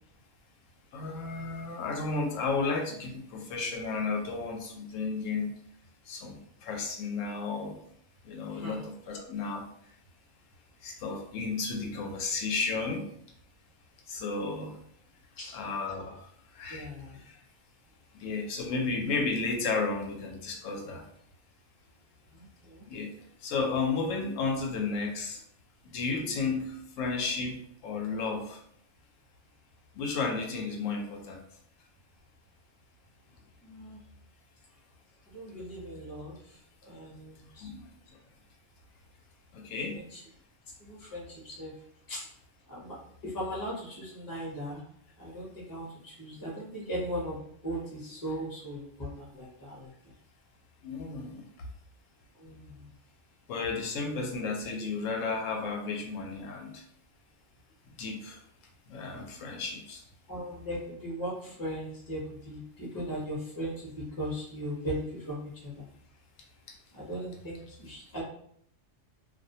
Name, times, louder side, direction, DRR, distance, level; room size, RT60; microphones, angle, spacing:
voice 1, 0.9-5.6 6.0-7.9 8.2-9.7 10.8-13.2 14.1-14.8 15.5-17.4 18.1-21.1 22.9-25.4 25.8-28.6 29.9-31.4 37.6-37.9 39.5-40.0 50.8-51.4 53.5-56.8 58.0-58.4 58.9-60.0, left 4 dB, 90° left, 1 dB, 1.0 m, -33 dB
voice 2, 16.7-17.2 22.3-22.9 33.6-34.0 35.3-37.7 39.9-40.2 40.8-41.7 42.1-42.3 42.7-44.8 45.2-49.9 52.4-52.9 60.3-65.9 66.9-68.2, equal, 20° left, -4 dB, 0.6 m, -38 dB
2.4 x 2.1 x 2.6 m, 0.66 s
omnidirectional pair, 1.3 m